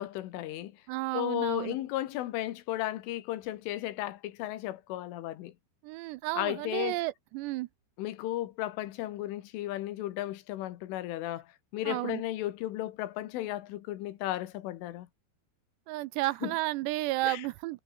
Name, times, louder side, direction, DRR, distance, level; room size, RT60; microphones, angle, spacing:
voice 1, 0.0-0.7 1.1-5.5 6.4-7.0 8.0-11.5 11.7-15.1 16.4-16.6 17.2-17.5, left 14 dB, 90° left, 4.0 m, -34 dB
voice 2, 0.9-1.8 5.8-7.7 11.9-12.2 15.9-17.8, right 18 dB, 80° right, 2.5 m, -32 dB
omnidirectional pair, 5.5 m